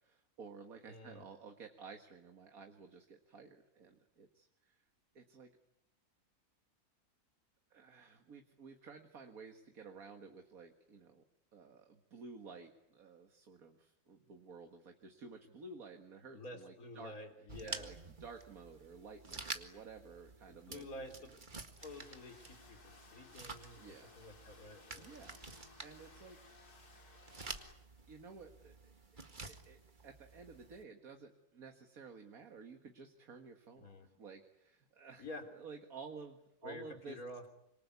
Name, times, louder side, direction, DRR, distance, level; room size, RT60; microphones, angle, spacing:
voice 1, 0.0-4.8 5.2-5.5 7.7-11.2 11.5-17.1 17.6-20.9 23.7-24.2 25.0-26.4 27.2-27.5 28.1-28.9 29.4-33.9 34.2-35.3 35.5-37.2, right 5 dB, 65° right, 5 dB, 2.2 m, -53 dB
voice 2, 0.9-1.2 16.3-17.9 20.5-21.3 21.8-25.1 33.8-34.1 35.2-35.4 36.6-37.5, left 1 dB, 65° left, 7 dB, 3.9 m, -49 dB
sound 1, 17.5-30.8, right 3 dB, 30° right, 2.0 m, -50 dB
sound 2, 21.8-27.7, left 4 dB, 85° left, 3.7 m, -61 dB
26.0 x 24.0 x 9.5 m, 0.82 s
omnidirectional pair, 1.6 m